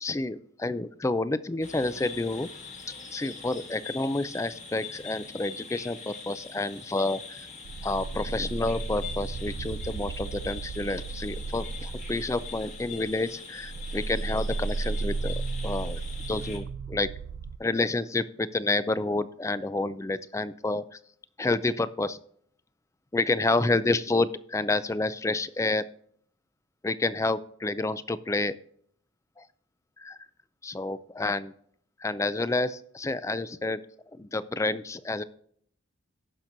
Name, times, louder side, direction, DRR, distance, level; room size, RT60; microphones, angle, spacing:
voice 1, 0.0-2.5 3.1-7.5 7.8-15.3 15.6-16.0 16.3-17.1 17.6-21.0 21.4-22.2 23.1-25.8 26.8-28.5 29.4-29.5 30.0-30.2 30.6-31.5 32.0-33.8 34.1-35.2, left 2 dB, 15° left, 15 dB, 0.3 m, -29 dB
sound 1, 1.6-16.6, left 5 dB, 35° left, 1.5 m, -43 dB
sound 2, 7.6-13.2 13.6-17.6, right 4 dB, 75° right, 0.4 m, -34 dB
17.5 x 6.0 x 2.6 m, 0.62 s
head